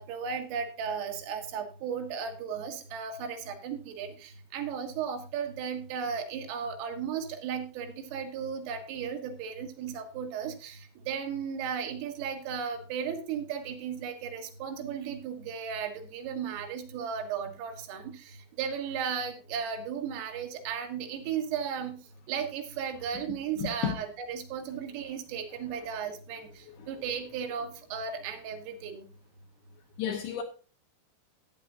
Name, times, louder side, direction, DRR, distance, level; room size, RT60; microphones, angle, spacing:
voice 1, 0.0-22.0 22.3-29.1, right 7 dB, 85° right, 4.2 m, -35 dB
voice 2, 23.6-24.0 26.8-26.9 30.0-30.4, left 8 dB, 75° left, 2.5 m, -32 dB
14.0 x 9.3 x 2.5 m
omnidirectional pair, 5.7 m